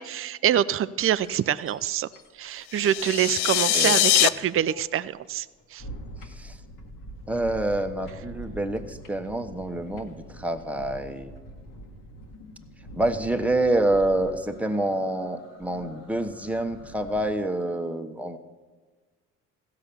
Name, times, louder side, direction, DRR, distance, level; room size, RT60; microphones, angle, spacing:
voice 1, 0.0-2.1 2.4-5.4 5.7-5.8, right 11 dB, 35° right, 15 dB, 0.5 m, -25 dB
sound 1, 1.0-3.0 3.4-17.3, equal, 60° left, 1.7 m, -44 dB
sound 2, 2.7-4.3, left 15 dB, 80° left, 0.5 m, -22 dB
voice 2, 6.2-6.6 7.3-11.3 12.9-18.4, right 1 dB, 5° right, 6 dB, 1.1 m, -27 dB
15.5 x 5.8 x 6.9 m, 1.4 s
hypercardioid pair, 55°, 37 cm